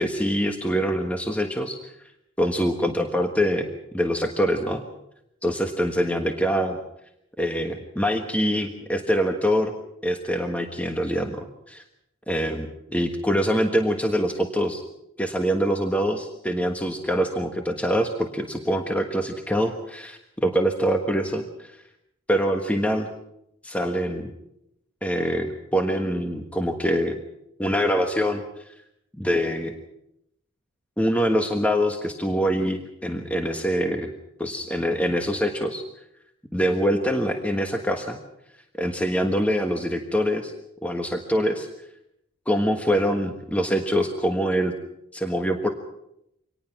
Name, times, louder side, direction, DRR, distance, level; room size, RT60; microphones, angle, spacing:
voice 1, 0.0-1.9 2.4-3.7 3.9-4.8 5.4-6.8 7.4-9.7 10.0-11.8 12.3-14.8 15.2-21.7 22.3-23.1 23.6-24.3 25.0-27.1 27.6-28.4 29.2-29.7 31.0-34.1 34.4-35.8 36.5-38.2 38.8-40.5 40.8-41.7 42.5-44.7 45.1-45.7, equal, 5° left, 4 dB, 1.4 m, -24 dB
25.0 x 19.0 x 6.0 m, 0.80 s
head